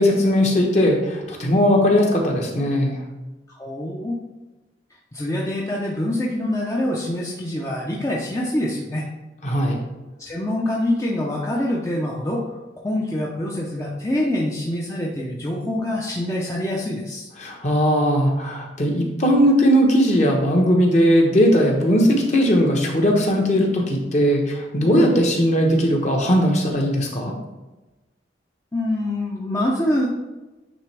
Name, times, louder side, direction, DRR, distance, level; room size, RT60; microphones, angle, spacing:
voice 1, 0.0-3.0 9.4-9.8 17.4-27.3, equal, 40° left, 0 dB, 1.1 m, -18 dB
voice 2, 3.5-4.2 5.1-9.1 10.2-12.6 12.8-17.3 28.7-30.1, left 1 dB, 15° left, -3 dB, 0.6 m, -25 dB
9.2 x 3.3 x 3.4 m, 1.1 s
head